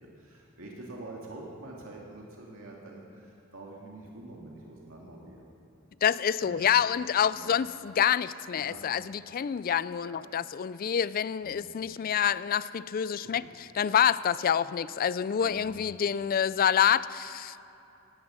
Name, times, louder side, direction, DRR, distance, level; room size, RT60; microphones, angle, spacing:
voice 1, 0.2-5.5 6.4-6.7 7.3-7.5 8.5-8.8 10.0-10.2 11.4-11.6 13.2-13.3 15.4-15.7, right 2 dB, 90° right, 2.3 m, -46 dB
voice 2, 6.0-17.7, left 8 dB, 45° left, 0.4 m, -27 dB
17.0 x 11.0 x 6.3 m
head